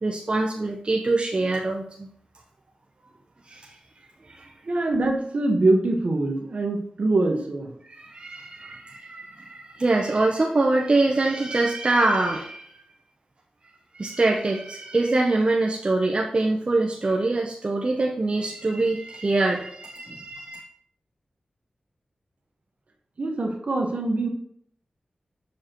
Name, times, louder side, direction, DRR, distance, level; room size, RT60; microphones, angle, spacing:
voice 1, 0.0-2.1 3.5-3.7 4.3-4.5 7.9-12.8 13.9-20.6, right 2 dB, 40° right, 0 dB, 0.8 m, -24 dB
voice 2, 4.6-7.7 8.6-8.7 23.2-24.3, right 2 dB, 60° right, 2 dB, 1.3 m, -24 dB
7.1 x 6.6 x 3.0 m, 0.66 s
wide cardioid pair, 65°, 3 cm